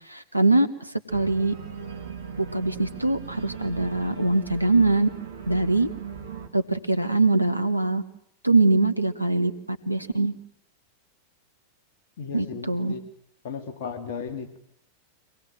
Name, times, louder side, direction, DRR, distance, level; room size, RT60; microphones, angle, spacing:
voice 1, 0.1-0.7 1.1-1.5 2.4-5.1 5.5-5.9 6.5-8.0 8.4-10.3 12.3-12.9, right 2 dB, 90° right, 9 dB, 1.3 m, -22 dB
Organ, 1.1-6.5, right 6 dB, 65° right, 2.3 m, -39 dB
voice 2, 12.2-13.1 13.4-14.6, left 6 dB, 55° left, 5 dB, 2.9 m, -35 dB
24.5 x 19.0 x 7.8 m, 0.73 s
figure-of-eight pair, 90°, 0 cm